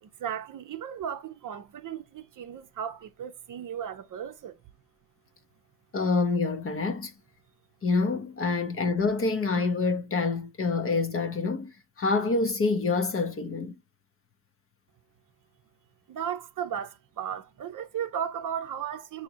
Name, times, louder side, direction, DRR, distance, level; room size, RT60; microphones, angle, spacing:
voice 1, 0.0-4.6 16.1-19.2, right 8 dB, 40° right, 0.6 m, -35 dB
voice 2, 5.9-7.1 7.8-11.7 12.0-13.7, left 4 dB, 30° left, 0.7 m, -26 dB
5.9 x 2.8 x 2.8 m
cardioid pair, 100°, 48 cm